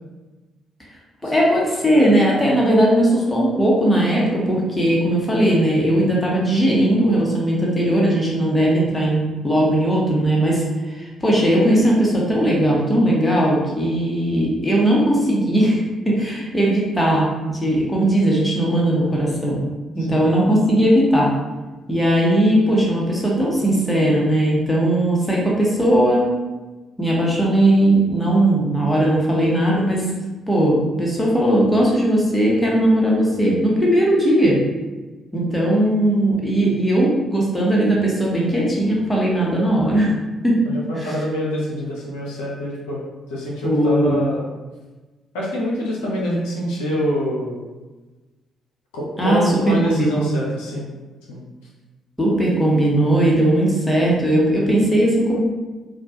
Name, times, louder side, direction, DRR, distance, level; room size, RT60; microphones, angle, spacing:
voice 1, 1.2-19.6 19.9-21.3 21.9-26.2 27.0-30.0 30.5-34.6 35.3-40.1 40.4-40.5 40.9-41.2 43.6-44.2 49.2-50.3 52.2-55.4, right 1 dB, 10° left, -4 dB, 0.8 m, -18 dB
voice 2, 40.7-43.0 43.3-44.5 45.3-47.6 48.9-50.9 51.3-51.4, equal, 70° left, -5 dB, 0.4 m, -25 dB
2.2 x 2.1 x 2.7 m, 1.2 s
figure-of-eight pair, 40°, 0 cm